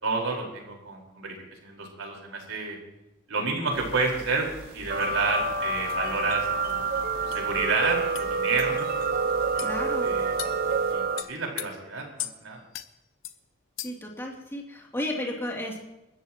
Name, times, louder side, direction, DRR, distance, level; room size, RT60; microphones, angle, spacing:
voice 1, 0.0-1.3 1.6-2.8 3.3-4.5 4.7-6.9 7.2-8.8 9.5-9.7 10.0-10.3 10.9-11.0 11.3-12.1 12.4-12.6, right 4 dB, 90° right, -1 dB, 4.8 m, -29 dB
sound 1, 3.7-10.9, right 1 dB, 65° right, 5.5 m, -46 dB
sound 2, 4.9-11.2, right 4 dB, 45° right, 0.7 m, -27 dB
sound 3, 6.7-6.8 7.3-7.4 8.1-8.3 8.6-8.7 9.6-9.7 10.4-10.6 11.2-11.7 12.2-12.4 12.7-12.9 13.2-13.4 13.8-14.1, left 13 dB, 70° left, 0.8 m, -36 dB
voice 2, 9.6-10.1 13.8-15.8, left 1 dB, 15° left, -2 dB, 3.0 m, -33 dB
30.0 x 13.5 x 3.1 m, 0.96 s
head